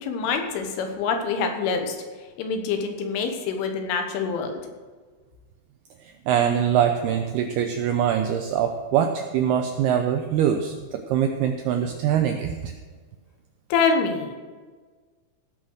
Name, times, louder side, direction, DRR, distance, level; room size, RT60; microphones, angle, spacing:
voice 1, 0.0-2.0 2.4-4.6 13.7-14.4, left 5 dB, 90° left, 5 dB, 3.8 m, -25 dB
voice 2, 6.3-12.7, right 9 dB, 85° right, 5 dB, 2.3 m, -23 dB
17.0 x 5.8 x 6.4 m, 1.4 s
omnidirectional pair, 5.4 m